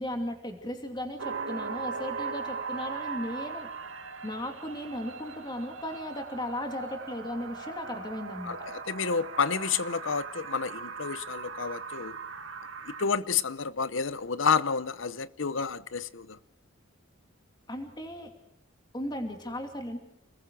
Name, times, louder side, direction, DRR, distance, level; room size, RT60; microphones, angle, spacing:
voice 1, 0.0-3.7 4.2-8.5 17.7-18.3 18.9-20.0, left 1 dB, 20° left, 2.7 m, -36 dB
sound 1, 1.2-13.0, right 5 dB, 80° right, 1.9 m, -39 dB
voice 2, 8.9-12.2 13.0-16.4, left 5 dB, 70° left, 0.9 m, -29 dB
30.0 x 21.0 x 4.9 m
head